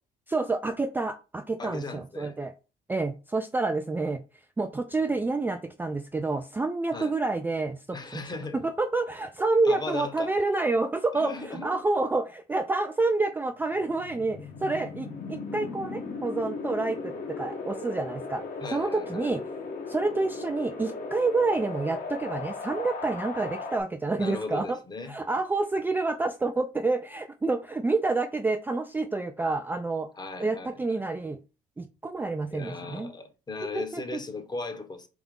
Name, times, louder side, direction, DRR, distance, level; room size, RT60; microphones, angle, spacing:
voice 1, 0.3-2.5 2.9-4.2 4.6-8.3 8.6-18.4 18.7-19.4 19.9-24.8 25.1-30.1 30.4-31.4 31.8-33.1 33.7-34.0, right 3 dB, 10° right, 0.3 m, -28 dB
voice 2, 1.6-2.3 6.9-7.1 7.9-8.6 9.6-10.3 11.1-11.8 18.6-19.3 24.2-25.1 30.1-30.8 32.5-35.1, left 3 dB, 25° left, 0.9 m, -37 dB
Wind, 13.6-23.8, left 4 dB, 55° left, 1.2 m, -37 dB
4.0 x 3.6 x 3.6 m
cardioid pair, 110°, 17 cm